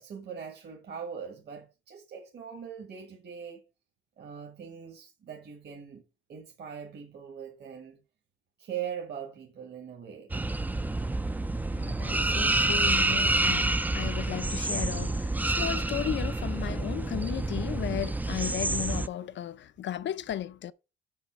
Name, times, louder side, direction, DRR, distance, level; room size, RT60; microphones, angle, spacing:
voice 1, 0.0-3.6 4.2-6.0 6.3-8.0 8.6-10.3, right 8 dB, 50° right, 1.4 m, -41 dB
sound 1, 10.3-19.1, right 2 dB, 10° right, 0.4 m, -28 dB
voice 2, 11.7-20.7, left 11 dB, 60° left, 0.6 m, -35 dB
6.3 x 5.5 x 5.8 m
cardioid pair, 120°, 21 cm